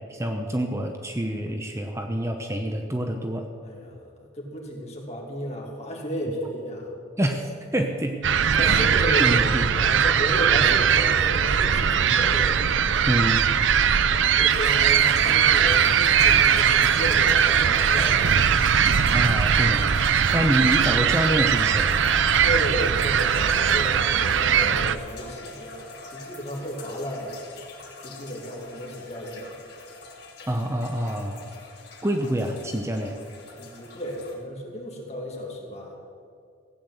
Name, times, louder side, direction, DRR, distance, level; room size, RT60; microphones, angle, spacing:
voice 1, 0.1-3.5 7.2-8.2 8.6-9.7 13.1-13.5 19.1-19.8 20.3-21.9 30.5-31.4 32.0-33.2, right 1 dB, 15° right, 4 dB, 0.8 m, -26 dB
voice 2, 3.6-6.9 8.6-9.3 9.7-12.7 13.9-18.6 22.4-27.4 28.0-29.6 33.6-36.0, equal, 35° left, -1 dB, 2.6 m, -33 dB
sound 1, 8.2-25.0, right 8 dB, 85° right, 0.5 m, -20 dB
sound 2, 14.5-34.3, left 3 dB, 60° left, 2.5 m, -41 dB
15.5 x 8.7 x 7.9 m, 2.3 s
head